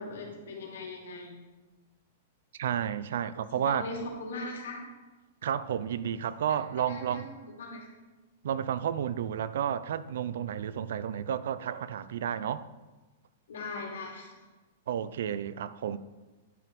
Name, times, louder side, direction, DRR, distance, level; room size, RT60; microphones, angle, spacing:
voice 1, 0.0-1.4 3.7-4.8 6.9-7.9 13.5-14.3, left 2 dB, 80° left, 2.8 m, -39 dB
voice 2, 2.6-3.9 5.4-7.3 8.4-12.7 14.9-16.0, right 9 dB, 60° right, 0.4 m, -31 dB
10.5 x 5.8 x 5.2 m
supercardioid pair, 175°, 0 cm